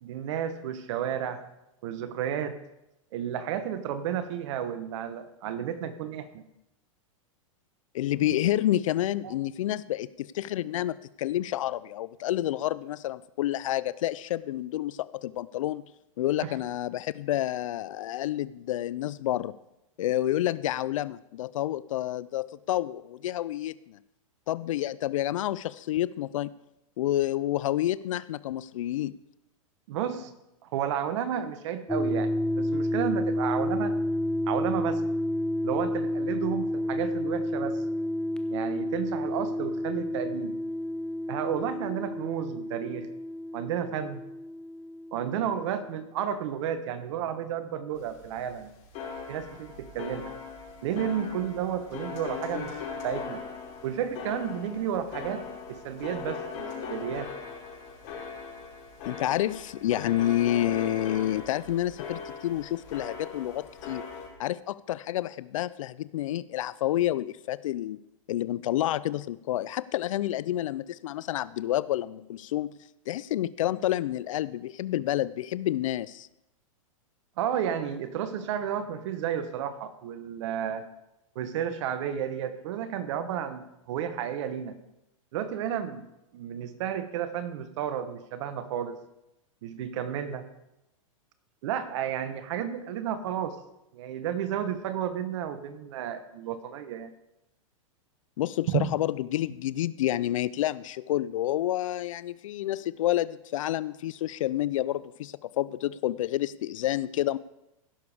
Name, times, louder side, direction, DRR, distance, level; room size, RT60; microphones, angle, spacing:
voice 1, 0.0-1.4 1.8-2.5 3.1-6.4 9.2-9.3 16.4-16.5 29.9-30.3 30.6-33.9 34.5-35.0 35.6-37.8 38.5-40.5 41.3-43.1 43.5-44.2 45.1-48.7 49.3-50.3 50.8-53.4 53.8-55.4 55.7-57.3 77.4-80.9 81.3-84.7 85.3-86.1 86.3-89.0 89.6-90.4 91.6-93.6 93.9-97.1 98.7-98.9, right 9 dB, 60° right, 11 dB, 1.0 m, -32 dB
voice 2, 7.9-15.8 16.2-19.5 20.0-24.0 24.5-26.5 27.0-29.1 59.1-64.0 64.4-68.0 68.3-72.7 73.1-76.3 98.4-107.4, left 13 dB, 70° left, 18 dB, 0.4 m, -29 dB
sound 1, 31.9-45.8, left 1 dB, 5° left, 0.8 m, -30 dB
sound 2, 47.9-64.3, left 5 dB, 50° left, 5.4 m, -40 dB
16.0 x 6.9 x 4.9 m, 0.89 s
hypercardioid pair, 115°, 18 cm